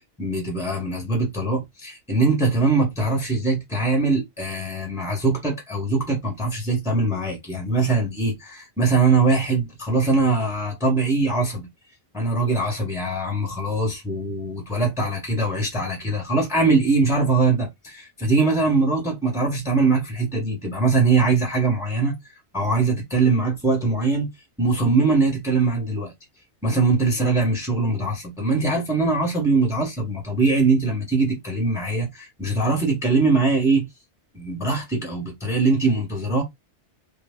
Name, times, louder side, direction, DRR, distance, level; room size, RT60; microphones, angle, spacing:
voice 1, 0.2-11.6 12.1-22.1 22.5-24.3 24.6-26.1 26.6-33.9 34.3-36.4, right 3 dB, 5° right, 1.0 m, -22 dB
3.0 x 2.2 x 3.5 m
omnidirectional pair, 1.2 m